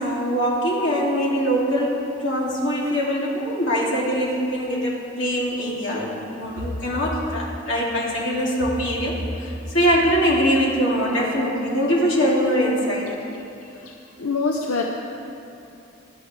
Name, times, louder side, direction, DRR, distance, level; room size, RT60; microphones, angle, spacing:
voice 1, 0.0-13.1, equal, 60° left, -4 dB, 2.6 m, -22 dB
voice 2, 14.2-14.8, left 4 dB, 85° left, 0 dB, 0.8 m, -24 dB
18.0 x 11.5 x 3.3 m, 2.7 s
head